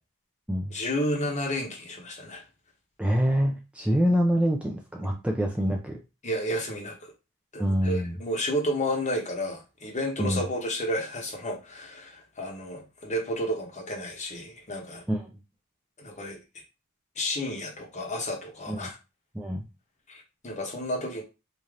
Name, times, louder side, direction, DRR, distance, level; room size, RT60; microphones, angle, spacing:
voice 1, 0.7-2.4 5.0-5.2 6.2-7.1 7.5-15.0 16.0-16.4 17.2-19.0 20.1-21.2, equal, 35° left, 0 dB, 1.0 m, -31 dB
voice 2, 3.0-6.0 7.6-8.2 10.2-10.4 15.1-15.4 18.7-18.9 19.3-19.6, equal, 5° right, 1 dB, 0.4 m, -26 dB
3.2 x 2.8 x 3.7 m, 0.27 s
head